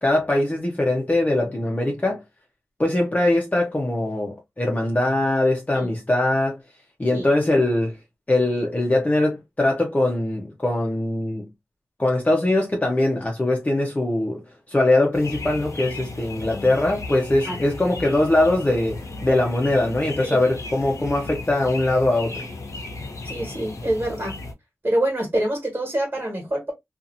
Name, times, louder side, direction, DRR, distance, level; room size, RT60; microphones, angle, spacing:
voice 1, 0.0-2.2 2.8-6.6 7.0-8.0 8.3-11.5 12.0-14.4 14.7-22.5, left 2 dB, 30° left, 0.8 m, -21 dB
sound 1, 15.1-24.5, left 3 dB, 80° left, 0.8 m, -35 dB
voice 2, 23.2-24.4 24.8-26.7, right 1 dB, 45° right, 1.6 m, -25 dB
2.8 x 2.5 x 2.5 m
wide cardioid pair, 60°, 5 cm